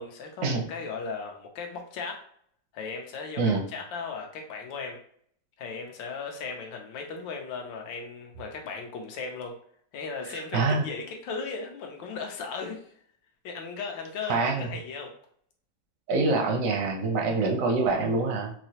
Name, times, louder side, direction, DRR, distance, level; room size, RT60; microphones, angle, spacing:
voice 1, 0.0-2.2 2.7-5.0 5.6-9.5 9.9-12.8 13.4-15.1, left 4 dB, 80° left, 2 dB, 1.4 m, -37 dB
voice 2, 10.3-10.8 14.3-14.7 16.1-18.5, right 3 dB, 65° right, 1 dB, 0.8 m, -25 dB
4.6 x 2.0 x 2.8 m, 0.62 s
omnidirectional pair, 2.1 m